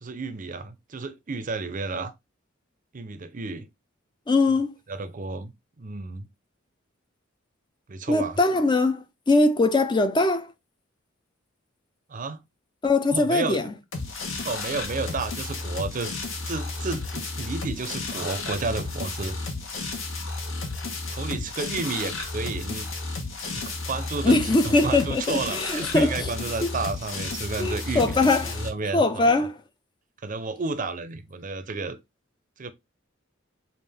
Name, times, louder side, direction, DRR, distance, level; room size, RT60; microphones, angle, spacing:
voice 1, 0.0-2.1 2.9-3.7 4.9-5.5 5.8-6.3 7.9-8.4 12.1-12.4 13.1-13.6 14.4-16.1 16.4-19.4 21.1-22.9 23.3-29.3 30.2-32.0 32.6-32.7, right 3 dB, 40° right, 0.6 m, -32 dB
voice 2, 4.3-4.7 8.1-10.5 12.8-13.7 24.2-26.1 26.6-26.7 27.6-28.6 28.9-29.6, left 2 dB, 25° left, 0.4 m, -22 dB
sound 1, 13.9-28.7, left 3 dB, 75° left, 1.1 m, -33 dB
5.2 x 2.5 x 3.4 m
head